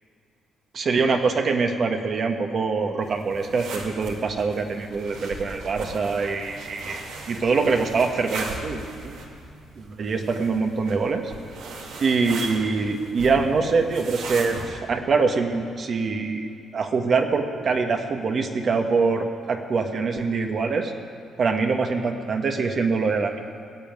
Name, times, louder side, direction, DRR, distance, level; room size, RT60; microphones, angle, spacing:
voice 1, 0.7-9.2 9.7-11.2 12.0-20.9 21.4-23.5, right 4 dB, 50° right, 4 dB, 1.4 m, -24 dB
sound 1, 3.0-14.7, right 3 dB, 85° right, 2.2 m, -38 dB
17.5 x 7.1 x 9.4 m, 2.4 s
cardioid pair, 90°, 0 cm